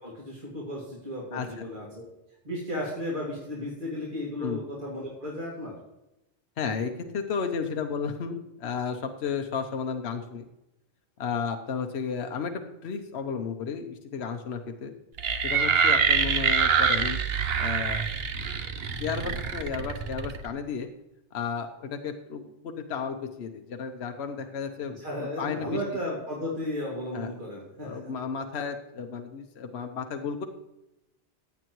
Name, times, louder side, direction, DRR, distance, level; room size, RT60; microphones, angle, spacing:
voice 1, 0.0-2.1 2.4-5.7 24.9-28.1, left 1 dB, 50° right, -5 dB, 2.6 m, -34 dB
voice 2, 1.3-1.6 4.4-4.6 6.6-10.5 11.2-14.9 15.4-17.2 17.6-18.1 19.0-20.9 21.3-24.9 25.2-25.8 27.1-27.3 27.8-30.4, left 6 dB, 75° left, 5 dB, 1.1 m, -33 dB
sound 1, 15.2-20.5, right 6 dB, 65° right, 1.0 m, -25 dB
16.0 x 9.4 x 3.1 m, 0.90 s
omnidirectional pair, 1.1 m